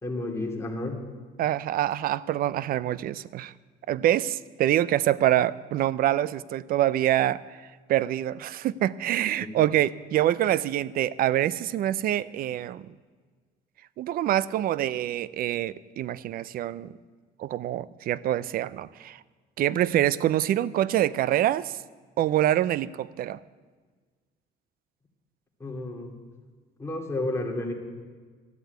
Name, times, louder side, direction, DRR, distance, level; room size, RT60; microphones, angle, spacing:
voice 1, 0.0-1.0 9.4-9.5 25.6-26.1 26.8-27.7, left 2 dB, 15° left, 0 dB, 2.6 m, -31 dB
voice 2, 1.4-3.5 3.9-12.9 14.0-17.0 17.4-19.2 19.6-21.8 22.2-23.4, right 12 dB, 60° right, 20 dB, 0.5 m, -25 dB
13.5 x 8.0 x 9.4 m, 1.5 s
cardioid pair, 110°, 17 cm